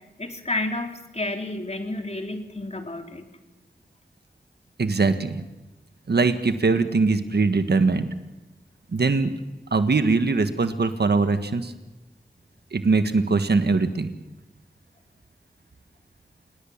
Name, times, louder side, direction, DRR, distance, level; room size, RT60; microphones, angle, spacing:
voice 1, 0.2-3.3, left 2 dB, 40° left, 4 dB, 3.5 m, -30 dB
voice 2, 4.8-5.4 6.1-8.1 8.9-9.3 9.7-11.7 12.7-14.1, right 3 dB, 75° right, 9 dB, 1.5 m, -21 dB
27.5 x 19.5 x 7.3 m, 1.1 s
cardioid pair, 40°, 17 cm